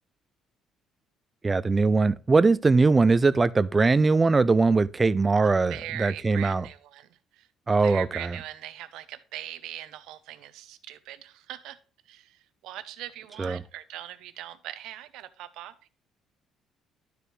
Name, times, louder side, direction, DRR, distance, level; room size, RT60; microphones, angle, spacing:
voice 1, 1.4-6.7 7.7-8.4 13.4-13.6, right 3 dB, 20° right, 0.3 m, -21 dB
voice 2, 5.4-7.5 7.8-11.8 12.1-15.9, right 13 dB, 85° right, 0.7 m, -41 dB
12.0 x 4.8 x 3.2 m
cardioid pair, 145°, 0 cm